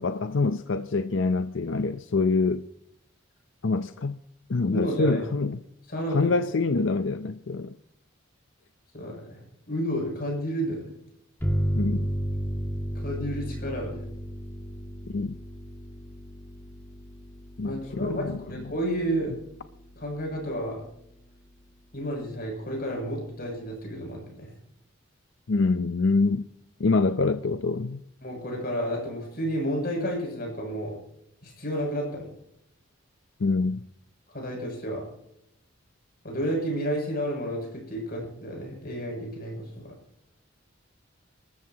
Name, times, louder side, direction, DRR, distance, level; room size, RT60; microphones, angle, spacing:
voice 1, 0.0-2.6 3.6-4.2 4.5-5.6 6.1-7.7 11.7-12.1 15.1-15.4 17.6-18.4 25.5-26.4 26.8-28.0 33.4-33.8, left 3 dB, 65° left, 10 dB, 0.6 m, -25 dB
voice 2, 4.7-5.2 5.9-6.3 8.9-9.4 9.7-10.9 12.9-14.0 17.6-19.3 20.0-20.8 21.9-24.5 28.2-31.0 31.4-32.3 34.3-35.0 36.2-39.9, equal, 45° left, 1 dB, 7.4 m, -31 dB
sound 1, 11.4-20.7, equal, 10° left, 1.6 m, -34 dB
26.5 x 14.0 x 2.9 m, 0.75 s
head